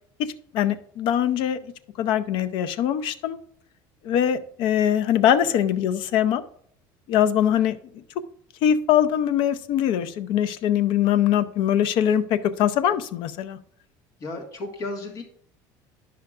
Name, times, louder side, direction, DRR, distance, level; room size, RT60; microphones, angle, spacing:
voice 1, 0.5-1.6 2.0-3.4 4.0-6.4 7.1-7.8 8.6-13.6, left 10 dB, 65° left, 13 dB, 0.6 m, -22 dB
voice 2, 14.2-15.2, left 2 dB, 40° left, 2 dB, 1.6 m, -34 dB
11.5 x 5.7 x 2.5 m, 0.63 s
cardioid pair, 135°, 9 cm